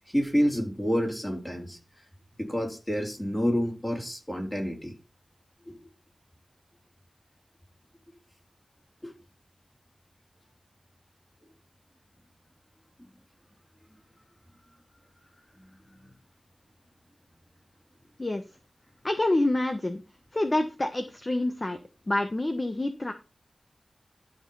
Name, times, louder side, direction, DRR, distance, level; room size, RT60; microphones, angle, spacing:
voice 1, 0.1-1.8 2.4-4.9 5.7-5.9 9.0-9.1 13.0-13.1 15.6-16.0, equal, 15° left, 4.1 m, -29 dB
voice 2, 19.0-20.0 20.3-21.8 22.1-23.1, left 1 dB, 30° left, 1.3 m, -27 dB
13.0 x 5.4 x 5.7 m
wide cardioid pair, 80°, 0 cm